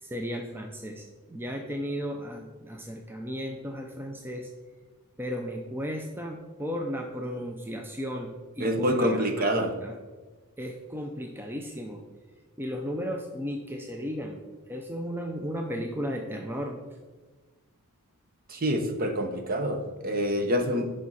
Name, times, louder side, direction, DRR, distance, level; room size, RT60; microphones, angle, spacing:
voice 1, 0.0-4.5 5.2-10.0 10.6-12.0 12.6-14.4 14.7-16.8, equal, 10° right, 2 dB, 0.5 m, -35 dB
voice 2, 8.6-9.7 18.5-20.9, equal, 40° right, 5 dB, 0.9 m, -26 dB
10.5 x 5.1 x 4.2 m, 1.3 s
head